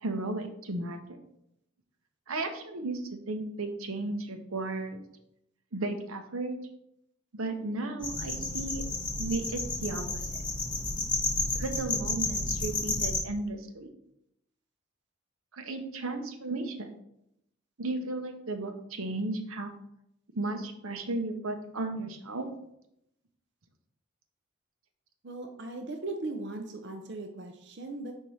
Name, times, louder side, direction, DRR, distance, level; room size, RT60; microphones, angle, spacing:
voice 1, 0.0-1.2 2.3-5.0 5.7-6.6 7.3-8.8 9.2-10.2 11.5-13.9 15.5-16.9 17.8-19.7 20.3-22.5, right 2 dB, 85° right, 6 dB, 0.9 m, -34 dB
sound 1, 8.0-13.2, left 2 dB, 20° left, 0.9 m, -31 dB
voice 2, 25.2-28.1, right 2 dB, 55° right, 4 dB, 0.6 m, -38 dB
4.8 x 4.5 x 5.4 m, 0.78 s
head